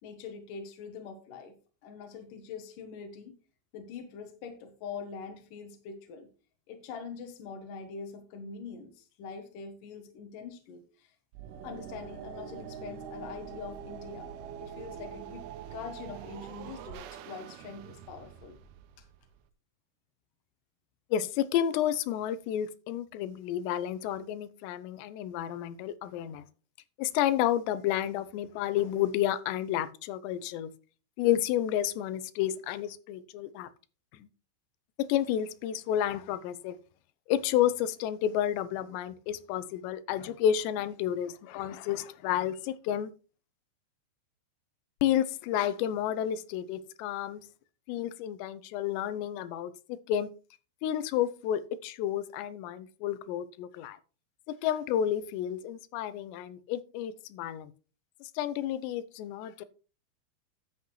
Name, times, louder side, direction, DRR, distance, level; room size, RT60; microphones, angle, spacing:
voice 1, 0.0-1.6 1.8-3.4 3.7-6.3 6.7-11.1 11.6-14.3 14.6-18.6 19.0-19.1, left 5 dB, 65° left, 2.5 m, -44 dB
sound 1, 11.3-19.4, right 8 dB, 75° right, 2.5 m, -44 dB
voice 2, 21.1-26.4 27.0-30.7 31.2-33.7 35.0-36.7 37.3-43.1 45.0-47.4 47.9-50.3 50.8-54.0 54.5-57.7 58.2-59.6, left 11 dB, 90° left, 2.9 m, -31 dB
11.5 x 8.1 x 3.2 m
omnidirectional pair, 4.9 m